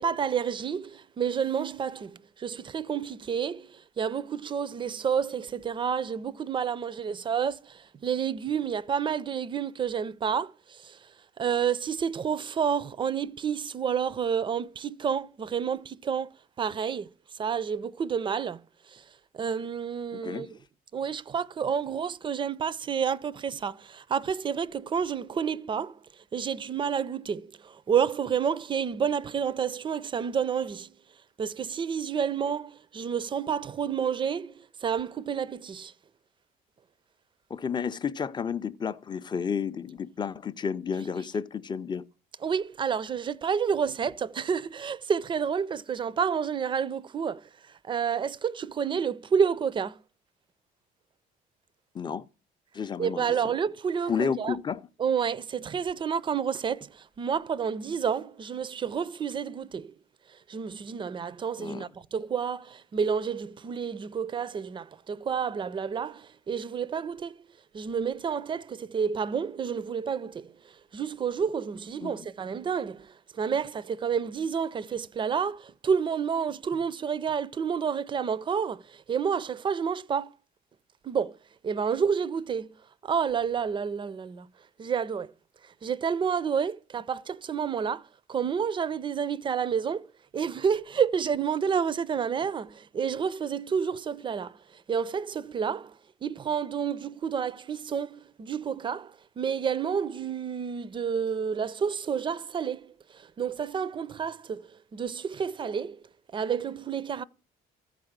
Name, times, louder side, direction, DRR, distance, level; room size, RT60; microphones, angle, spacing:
voice 1, 0.0-11.1 11.4-19.0 19.3-20.6 20.9-26.0 26.3-30.9 31.4-35.9 42.4-50.0 53.0-54.6 55.0-59.9 60.3-67.4 67.7-70.5 70.9-80.3 81.0-81.4 81.6-82.7 83.0-84.5 84.8-85.3 85.6-90.0 90.3-106.0 106.3-107.2, right 7 dB, 30° right, 0.5 m, -30 dB
voice 2, 20.1-20.5 37.5-42.0 51.9-52.3 52.7-53.4 54.1-54.8 61.6-61.9 72.0-72.3, left 6 dB, 25° left, 0.5 m, -31 dB
14.0 x 4.8 x 6.5 m
cardioid pair, 110°, 17 cm